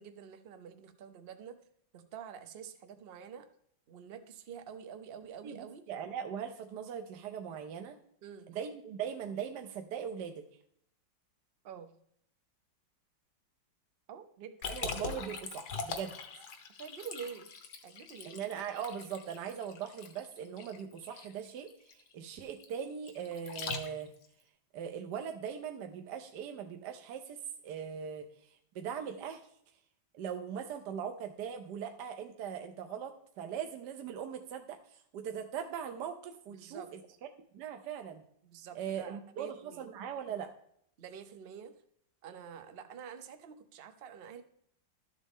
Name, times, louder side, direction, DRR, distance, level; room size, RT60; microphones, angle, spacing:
voice 1, 0.0-1.6 1.9-3.5 3.9-5.8 8.2-8.5 11.6-11.9 14.1-14.6 16.8-17.5 17.8-18.3 36.5-37.2 38.4-39.9 41.0-41.7 42.2-44.4, right 7 dB, 50° right, 9 dB, 0.7 m, -47 dB
voice 2, 5.4-8.0 8.5-10.5 14.7-16.1 18.2-24.1 24.7-29.4 30.1-37.0 37.5-38.2 38.7-40.5, right 8 dB, 65° right, 6 dB, 1.2 m, -40 dB
Liquid, 14.6-24.3, left 5 dB, 60° left, 1.5 m, -42 dB
12.5 x 7.5 x 3.5 m, 0.69 s
omnidirectional pair, 2.1 m